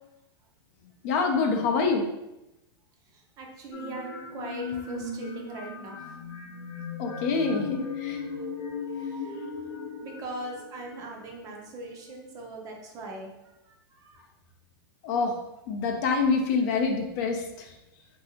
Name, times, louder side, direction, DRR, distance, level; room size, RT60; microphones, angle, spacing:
voice 1, 1.0-2.1 7.0-8.2 15.0-15.3 15.7-17.4, left 4 dB, 45° left, 3 dB, 0.5 m, -26 dB
voice 2, 3.4-6.0 8.3-8.4 9.0-9.4 10.0-13.3 13.7-13.8 14.0-14.2, right 2 dB, 25° right, 0 dB, 0.5 m, -40 dB
sound 1, 3.7-11.4, left 5 dB, 85° left, 0.7 m, -37 dB
3.1 x 2.6 x 2.8 m, 0.95 s
supercardioid pair, 150°, 13 cm